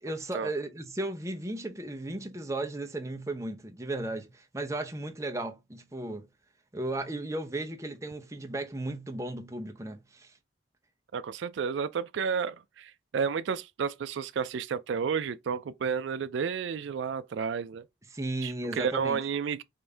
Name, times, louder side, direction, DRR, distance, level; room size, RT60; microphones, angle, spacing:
voice 1, 0.0-6.3 6.7-10.3 18.1-19.3, right 2 dB, 15° right, 0.7 m, -35 dB
voice 2, 11.1-17.8 18.4-19.6, right 6 dB, 70° right, 0.3 m, -31 dB
5.2 x 2.6 x 3.3 m
head